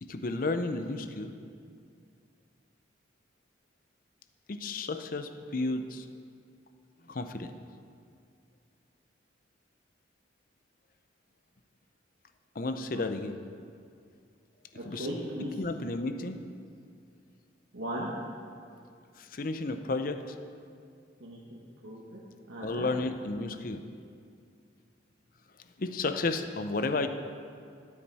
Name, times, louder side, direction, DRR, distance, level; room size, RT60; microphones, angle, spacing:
voice 1, 0.0-1.3 4.5-6.1 7.1-7.5 12.5-13.3 14.7-15.1 15.6-16.4 19.2-20.4 22.6-23.8 25.8-27.1, left 3 dB, 50° left, 8 dB, 0.6 m, -32 dB
voice 2, 14.7-15.6 17.7-18.1 21.2-21.6 21.8-22.2 22.5-22.9, equal, 85° right, -4 dB, 1.2 m, -37 dB
13.5 x 8.7 x 4.2 m, 2.3 s
head